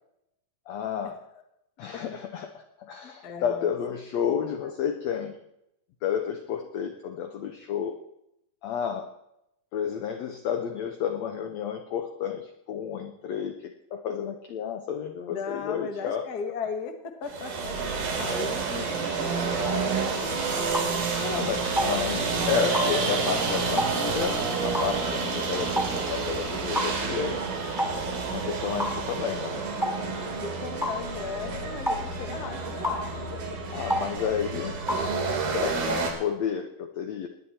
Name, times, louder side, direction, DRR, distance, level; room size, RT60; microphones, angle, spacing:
voice 1, 0.7-1.2 1.8-5.3 6.0-8.0 8.6-9.1 9.7-16.3 18.2-18.4 21.2-27.4 28.3-29.6 31.4-31.7 33.7-34.8 35.5-37.3, left 8 dB, 80° left, 6 dB, 1.5 m, -31 dB
voice 2, 3.0-3.7 4.6-4.7 15.3-21.3 29.8-33.8, left 5 dB, 55° left, 5 dB, 1.0 m, -38 dB
sound 1, 17.2-36.1, right 4 dB, 75° right, 4.3 m, -29 dB
sound 2, 20.7-20.9 21.7-21.9 22.7-22.9 23.8-23.9 24.7-24.9 25.7-25.9 26.7-26.9 27.8-28.0 28.8-29.0 29.8-30.0 30.8-31.0 31.8-32.0 32.8-33.0 33.9-34.1 34.9-35.1, equal, ahead, 1.0 m, -27 dB
sound 3, 22.4-31.1, right 2 dB, 90° right, 6.1 m, -41 dB
19.0 x 10.5 x 4.2 m, 0.83 s
omnidirectional pair, 4.2 m